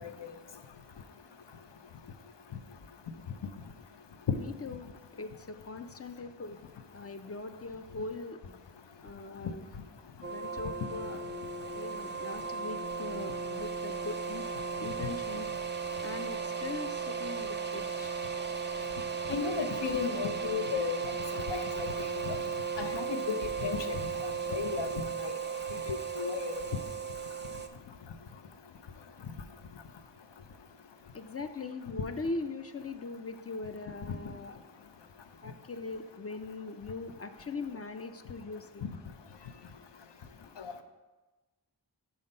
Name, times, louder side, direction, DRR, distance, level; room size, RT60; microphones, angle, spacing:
voice 1, 4.3-6.6 6.9-8.6 9.0-9.7 10.3-11.2 11.7-14.5 14.8-15.5 16.0-18.1 31.1-34.6 35.4-38.8, left 3 dB, 35° left, 8 dB, 0.4 m, -41 dB
sound 1, 10.2-27.7, right 6 dB, 25° right, 0.5 m, -36 dB
voice 2, 19.3-21.0 21.3-22.4 22.8-25.3 25.9-26.6 40.6-40.7, left 7 dB, 70° left, 7 dB, 0.6 m, -35 dB
5.7 x 4.3 x 5.3 m, 1.2 s
wide cardioid pair, 45°, 45 cm